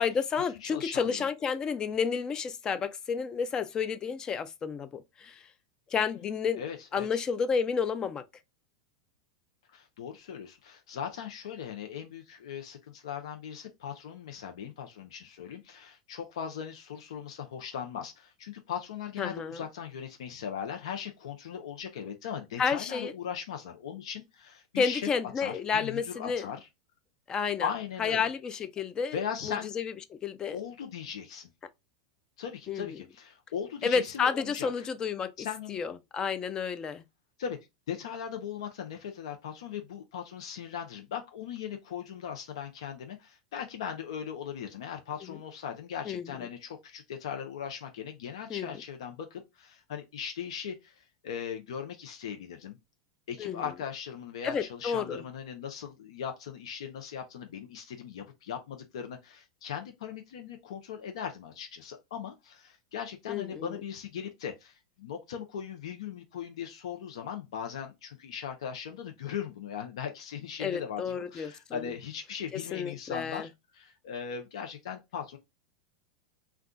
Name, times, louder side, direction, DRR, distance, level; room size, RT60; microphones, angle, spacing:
voice 1, 0.0-5.4 5.9-6.6 6.9-8.3 19.2-19.6 22.6-23.1 24.8-26.5 27.3-27.7 28.0-29.2 29.4-30.6 32.7-33.0 33.8-37.0 45.2-45.4 46.1-46.3 48.5-48.7 53.4-53.7 54.4-55.2 63.3-63.8 70.6-71.9 72.5-73.5, left 6 dB, 25° left, 0.4 m, -31 dB
voice 2, 0.6-1.2 6.2-6.3 6.6-7.1 9.7-25.1 25.4-26.7 27.6-28.3 29.1-29.7 30.5-31.5 32.4-34.9 35.4-35.8 37.4-37.6 37.9-52.8 53.3-75.4, left 8 dB, 75° left, 0.6 m, -39 dB
2.3 x 2.3 x 3.8 m
hypercardioid pair, 110°, 3 cm